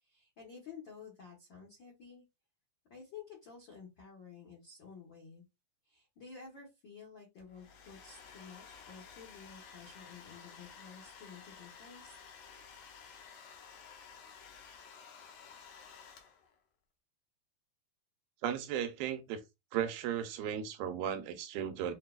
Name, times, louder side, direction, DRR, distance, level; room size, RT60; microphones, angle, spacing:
voice 1, 0.0-2.2 2.9-5.5 5.8-12.2, left 6 dB, 70° left, 1.1 m, -52 dB
Domestic sounds home sounds, 7.4-16.6, left 6 dB, 90° left, 1.4 m, -53 dB
voice 2, 18.4-19.4 19.7-21.9, right 9 dB, 85° right, 2.5 m, -35 dB
6.5 x 2.3 x 2.3 m
omnidirectional pair, 4.1 m